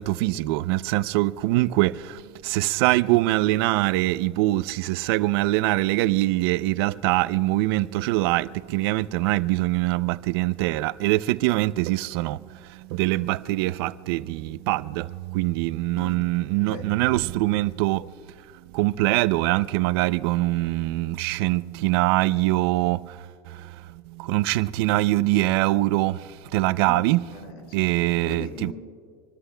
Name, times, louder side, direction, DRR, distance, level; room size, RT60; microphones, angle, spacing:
voice 1, 0.0-12.4 12.9-18.1 18.7-23.1 24.1-26.2 26.5-27.2 27.7-28.7, right 18 dB, 75° right, 0.5 m, -23 dB
voice 2, 16.5-16.9 26.9-27.7 28.2-28.7, left 3 dB, 80° left, 4.7 m, -39 dB
26.0 x 21.0 x 2.2 m
cardioid pair, 160°, 13 cm